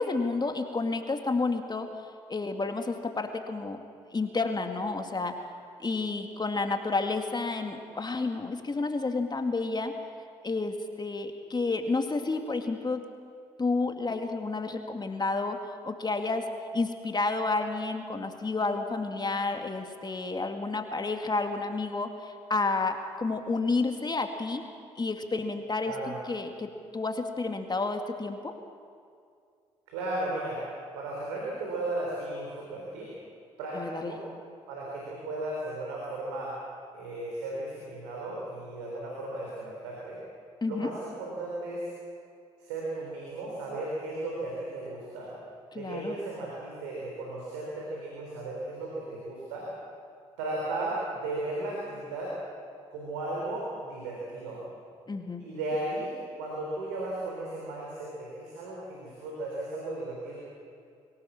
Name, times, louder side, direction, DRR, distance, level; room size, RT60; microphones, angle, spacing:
voice 1, 0.0-1.9 2.3-3.8 4.1-5.3 5.8-9.9 10.4-13.0 13.6-16.5 16.7-24.6 25.0-25.9 26.3-28.5 33.7-34.2 40.6-40.9 45.7-46.2 55.1-55.4, left 3 dB, 30° left, 5 dB, 2.2 m, -30 dB
voice 2, 25.8-26.2 29.9-30.6 30.9-33.1 33.6-34.2 34.7-36.5 36.9-40.2 40.7-41.9 42.6-45.3 45.7-49.7 50.4-52.4 52.9-54.6 55.4-60.4, right 2 dB, 85° right, -3 dB, 4.0 m, -35 dB
23.5 x 17.5 x 7.4 m, 2.3 s
hypercardioid pair, 45°, 14 cm